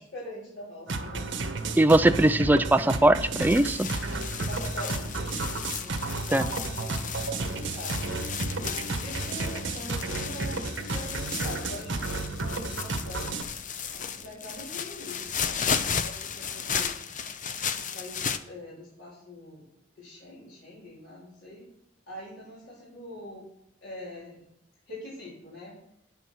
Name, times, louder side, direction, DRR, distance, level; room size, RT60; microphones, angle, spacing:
voice 1, 0.0-2.2 4.5-6.9 7.3-8.1 8.6-13.4 13.9-15.5 16.0-16.9 17.8-19.7 20.0-21.7 22.1-23.4 23.8-24.4 24.9-25.8, left 1 dB, 80° left, -7 dB, 4.2 m, -43 dB
sound 1, 0.9-13.4, right 3 dB, 80° right, 1.6 m, -32 dB
voice 2, 1.8-3.9 6.3-6.5, right 1 dB, 10° right, 10 dB, 0.4 m, -20 dB
sound 2, 3.4-18.4, left 7 dB, 45° left, 0.7 m, -34 dB
9.8 x 9.3 x 6.2 m, 0.76 s
head